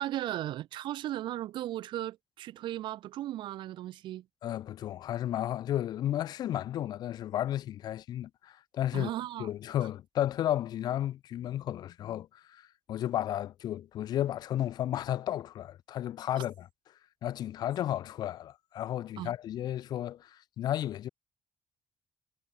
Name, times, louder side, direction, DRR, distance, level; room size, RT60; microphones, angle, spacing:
voice 1, 0.0-4.2 8.9-9.5 19.2-19.3, right 14 dB, 70° right, 4.5 m, -36 dB
voice 2, 4.4-9.1 9.4-16.7 17.2-21.1, left 12 dB, 55° left, 0.8 m, -33 dB
cardioid pair, 175°, 8 cm